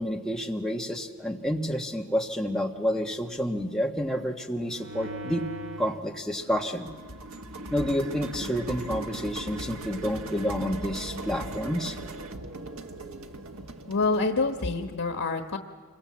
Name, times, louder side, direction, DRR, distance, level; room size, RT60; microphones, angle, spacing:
voice 1, 0.0-5.5 5.8-6.9 7.7-12.0, equal, 5° left, 1 dB, 1.5 m, -29 dB
sound 1, 4.6-6.0 6.4-15.0, right 1 dB, 80° right, 1.3 m, -39 dB
voice 2, 13.9-15.6, left 3 dB, 90° left, 6 dB, 1.3 m, -27 dB
26.5 x 23.5 x 7.5 m, 1.5 s
head